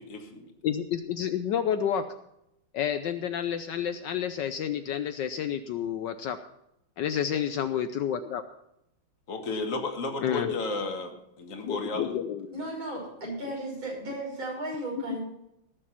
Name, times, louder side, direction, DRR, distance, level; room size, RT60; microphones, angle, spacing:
voice 1, 0.0-0.5 9.3-12.1, left 3 dB, 40° left, 4 dB, 1.9 m, -33 dB
voice 2, 0.6-2.1 2.7-6.4 7.0-8.4 10.2-10.6 11.6-12.6, left 9 dB, 70° left, 9 dB, 1.2 m, -30 dB
voice 3, 12.5-15.2, right 1 dB, 70° right, -4 dB, 6.9 m, -35 dB
18.5 x 6.9 x 5.7 m, 0.81 s
omnidirectional pair, 2.3 m